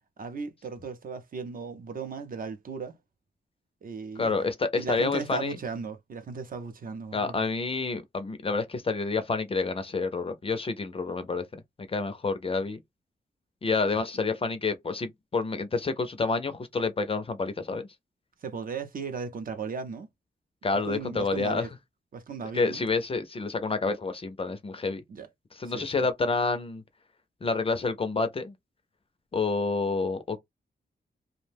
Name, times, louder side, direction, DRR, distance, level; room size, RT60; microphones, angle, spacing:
voice 1, 0.2-3.0 3.8-4.3 4.7-7.4 18.4-20.1 20.7-21.7 22.1-22.8 25.1-25.3 25.6-26.1, right 5 dB, 50° right, 0.5 m, -36 dB
voice 2, 4.2-5.6 7.1-11.6 11.9-12.8 13.6-17.9 20.6-21.7 22.5-25.0 25.6-26.8 27.4-28.5 29.3-30.4, left 4 dB, 30° left, 0.4 m, -28 dB
2.5 x 2.1 x 3.2 m
wide cardioid pair, 170°, 19 cm